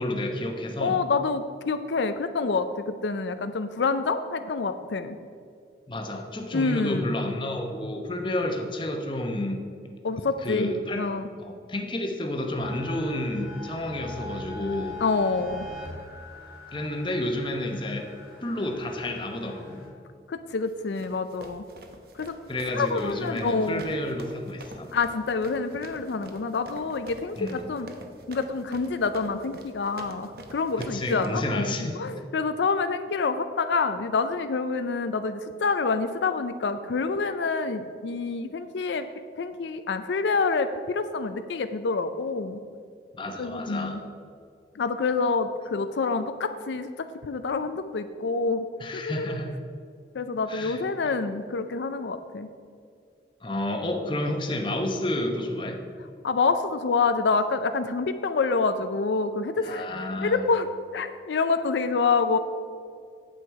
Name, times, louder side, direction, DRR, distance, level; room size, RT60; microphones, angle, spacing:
voice 1, 0.0-1.0 5.9-9.6 10.4-11.0 11.4-15.0 16.7-18.1 18.4-19.8 22.5-24.9 27.4-27.7 30.8-32.0 43.1-44.0 48.8-49.5 50.5-50.8 53.4-55.9 59.6-60.4, left 1 dB, 30° left, 3 dB, 0.9 m, -30 dB
voice 2, 0.8-5.2 6.5-7.1 10.0-11.2 15.0-15.7 20.3-21.6 22.1-22.3 22.7-23.9 24.9-27.9 28.3-39.1 39.4-42.6 43.4-44.0 44.7-48.7 48.9-49.4 50.1-52.5 56.2-59.9 60.2-62.4, left 4 dB, 85° left, 9 dB, 0.5 m, -27 dB
sound 1, 12.6-19.9, left 2 dB, 25° right, 2.5 m, -42 dB
sound 2, 20.7-31.3, right 1 dB, 55° right, 0.9 m, -45 dB
9.1 x 7.9 x 4.7 m, 2.3 s
head